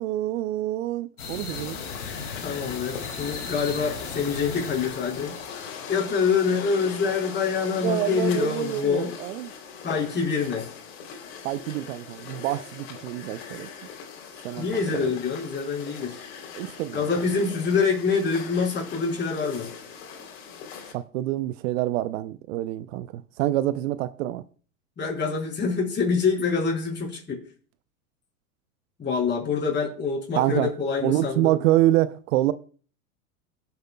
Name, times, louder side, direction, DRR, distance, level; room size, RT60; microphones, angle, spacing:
voice 1, 0.0-1.8 7.8-9.5 11.4-13.7 14.4-15.2 16.5-17.0 20.9-24.4 30.4-30.7 31.0-32.5, right 15 dB, 60° right, 0.6 m, -26 dB
sound 1, 1.2-5.8, left 5 dB, 85° left, 2.4 m, -37 dB
sound 2, 1.5-20.9, left 6 dB, 60° left, 3.2 m, -40 dB
voice 2, 2.4-5.4 5.9-9.2 9.8-10.7 14.6-16.2 16.9-19.7 25.0-27.4 29.0-31.6, left 5 dB, 25° left, 4.5 m, -26 dB
23.0 x 8.0 x 2.2 m
hypercardioid pair, 100°, 44 cm